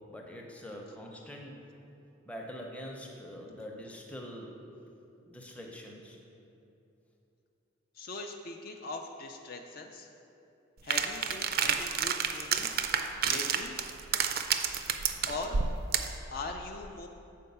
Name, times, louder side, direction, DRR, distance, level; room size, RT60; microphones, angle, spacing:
voice 1, 0.1-1.6 2.3-4.5 5.3-6.2, equal, 5° left, -1 dB, 0.6 m, -44 dB
voice 2, 8.0-10.1 10.8-12.7 13.2-13.7 15.3-15.6 16.3-17.1, left 3 dB, 50° left, 3 dB, 0.4 m, -40 dB
sound 1, 10.9-16.2, right 7 dB, 50° right, 0.3 m, -30 dB
6.7 x 4.6 x 5.4 m, 2.8 s
head